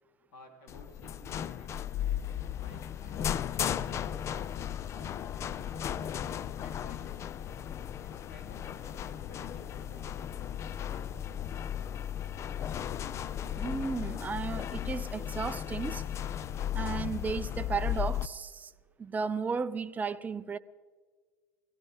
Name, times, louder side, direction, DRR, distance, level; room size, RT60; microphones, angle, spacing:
voice 1, 0.3-2.0 2.6-5.2 5.8-7.3 8.0-10.2, left 1 dB, 60° left, 3.5 m, -56 dB
sound 1, 0.7-18.3, left 10 dB, 35° left, 0.5 m, -35 dB
voice 2, 13.6-16.0 16.7-18.7 19.0-20.6, right 5 dB, 20° right, 0.5 m, -34 dB
21.5 x 16.0 x 3.6 m
hypercardioid pair, 80°, 9 cm